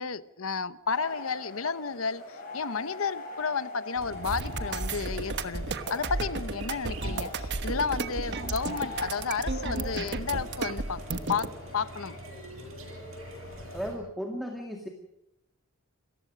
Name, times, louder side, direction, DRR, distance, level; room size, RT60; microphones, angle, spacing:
voice 1, 0.0-11.0 11.3-11.5 11.7-12.2, left 5 dB, 75° left, 15 dB, 0.9 m, -32 dB
sound 1, 0.9-13.9, left 2 dB, 40° left, 7.9 m, -43 dB
sound 2, 3.9-14.0, right 1 dB, 70° right, 7.8 m, -46 dB
sound 3, 4.2-11.5, right 3 dB, 55° right, 1.2 m, -33 dB
voice 2, 13.7-14.9, equal, ahead, 2 dB, 2.1 m, -35 dB
28.0 x 15.5 x 6.4 m, 0.84 s
head